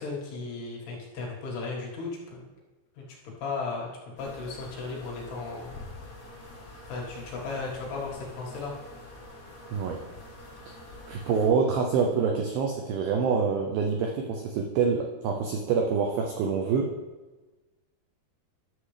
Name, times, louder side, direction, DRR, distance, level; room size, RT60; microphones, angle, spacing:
voice 1, 0.0-2.5 3.0-3.9 4.2-5.8 6.9-8.7, left 4 dB, 65° left, -3 dB, 3.7 m, -35 dB
sound 1, 4.2-11.5, left 2 dB, 40° left, 3.4 m, -46 dB
voice 2, 11.1-16.9, right 5 dB, 90° right, 2 dB, 2.0 m, -26 dB
12.0 x 7.5 x 3.4 m, 1.2 s
omnidirectional pair, 5.2 m